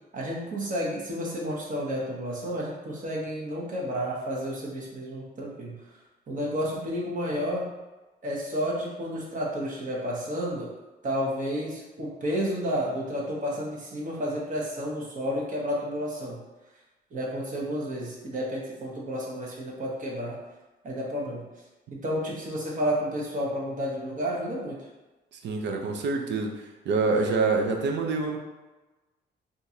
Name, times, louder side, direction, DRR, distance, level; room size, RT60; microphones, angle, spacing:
voice 1, 0.1-5.8 6.3-7.7 8.2-10.7 11.0-16.4 17.1-20.4 20.8-21.4 21.9-24.9, equal, 40° right, -4 dB, 1.0 m, -31 dB
voice 2, 25.4-28.4, right 3 dB, 65° right, 3 dB, 0.6 m, -26 dB
3.7 x 2.6 x 2.8 m, 1.1 s
cardioid pair, 90°, 20 cm